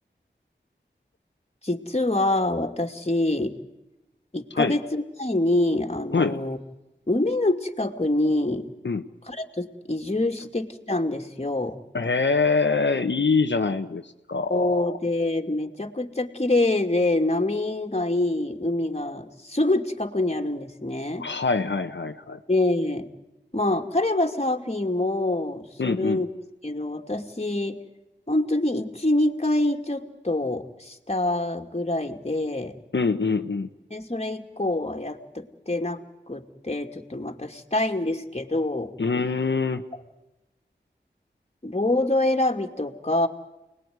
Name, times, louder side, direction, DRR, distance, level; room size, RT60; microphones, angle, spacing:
voice 1, 1.6-3.5 4.3-6.6 7.1-8.6 9.3-11.8 14.5-21.3 22.5-23.1 23.5-26.3 26.6-27.8 28.3-32.7 33.9-38.9 41.6-43.3, left 2 dB, 35° left, 5 dB, 2.8 m, -25 dB
voice 2, 11.9-15.0 21.2-22.4 25.8-26.2 32.9-33.7 39.0-39.8, left 4 dB, 75° left, 5 dB, 1.3 m, -24 dB
29.5 x 20.5 x 9.7 m, 0.99 s
wide cardioid pair, 50°, 19 cm